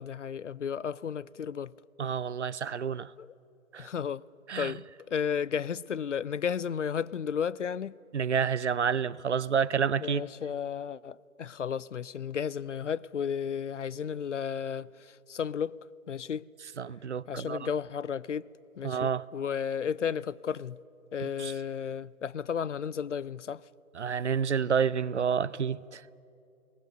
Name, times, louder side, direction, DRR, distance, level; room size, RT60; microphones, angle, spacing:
voice 1, 0.0-1.7 3.2-3.3 3.8-4.2 4.6-4.8 5.1-7.9 10.0-15.7 16.1-16.5 17.3-18.5 18.8-20.8 21.1-23.6, left 7 dB, 55° left, 0.5 m, -33 dB
voice 2, 2.0-3.1 3.7-3.9 4.5-4.7 8.1-10.2 16.8-17.6 18.8-19.2 21.4-21.5 24.0-26.0, right 7 dB, 55° right, 0.5 m, -29 dB
30.0 x 19.0 x 6.7 m
figure-of-eight pair, 155°, 44 cm